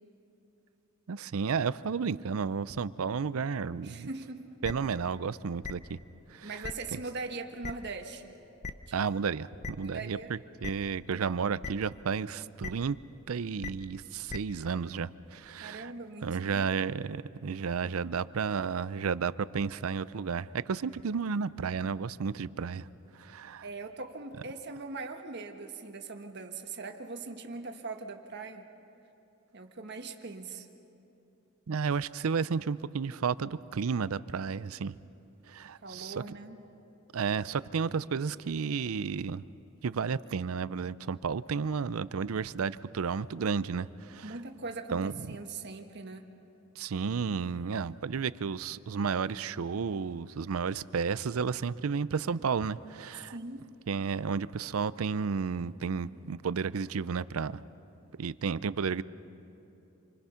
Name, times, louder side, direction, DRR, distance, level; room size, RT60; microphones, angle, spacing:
voice 1, 1.1-4.1 4.6-6.0 6.3-6.5 8.9-13.0 13.3-15.9 16.2-22.9 23.2-23.6 31.7-35.0 35.5-36.1 37.1-39.4 39.8-44.3 44.9-45.4 46.8-53.3 53.9-57.6 58.2-59.0, right 5 dB, 90° right, 17 dB, 0.5 m, -32 dB
voice 2, 3.8-4.5 6.4-8.3 8.9-9.0 9.8-10.3 15.6-16.7 23.6-28.7 29.5-30.7 35.8-36.6 44.2-46.3 53.3-53.7, right 3 dB, 55° right, 5 dB, 1.4 m, -41 dB
sound 1, 4.6-4.7 5.6-5.7 6.6-6.7 7.6-7.7 8.6-8.7 9.6-9.7 10.6-10.7 11.6-11.7 12.6-12.7 13.6-13.7 14.3-14.4, left 4 dB, 35° left, 0.7 m, -36 dB
28.0 x 24.5 x 5.7 m, 2.9 s
head